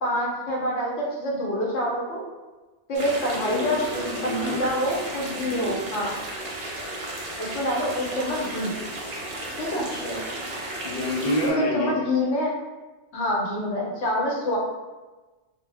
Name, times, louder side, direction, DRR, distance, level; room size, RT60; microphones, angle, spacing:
voice 1, 0.0-2.2 2.9-3.8 4.2-6.1 7.4-8.7 9.6-9.9 11.4-12.5 13.1-14.6, left 1 dB, 85° left, -3 dB, 1.0 m, -26 dB
sound 1, 2.9-11.5, right 1 dB, 60° right, 0.6 m, -34 dB
voice 2, 3.3-4.6 5.3-5.7 9.7-10.2 10.8-11.9, equal, 50° left, -4 dB, 0.6 m, -28 dB
2.1 x 2.0 x 3.2 m, 1.2 s
omnidirectional pair, 1.2 m